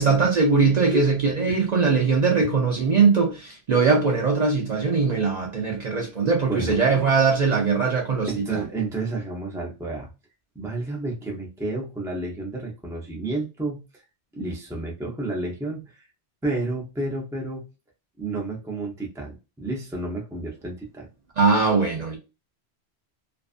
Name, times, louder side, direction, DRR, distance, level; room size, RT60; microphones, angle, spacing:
voice 1, 0.0-8.6 21.4-22.2, right 4 dB, 50° right, 0.6 m, -21 dB
voice 2, 6.5-6.8 8.3-10.1 10.5-14.0 14.3-16.1 16.4-17.6 18.2-21.1, right 2 dB, 5° right, 0.5 m, -31 dB
2.6 x 2.3 x 2.4 m
omnidirectional pair, 1.1 m